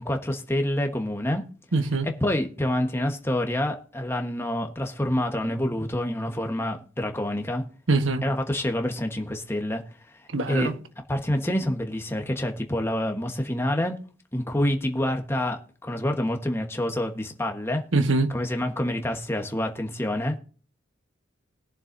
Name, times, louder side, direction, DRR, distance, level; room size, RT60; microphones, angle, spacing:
voice 1, 0.0-1.4 2.2-7.6 8.2-9.8 10.5-10.7 11.1-14.0 14.3-17.8 18.3-20.4, left 1 dB, 10° left, 1.2 m, -27 dB
voice 2, 1.7-2.1 7.9-8.3 10.3-10.8 17.9-18.3, right 3 dB, 75° right, 1.3 m, -23 dB
20.5 x 7.3 x 2.6 m
head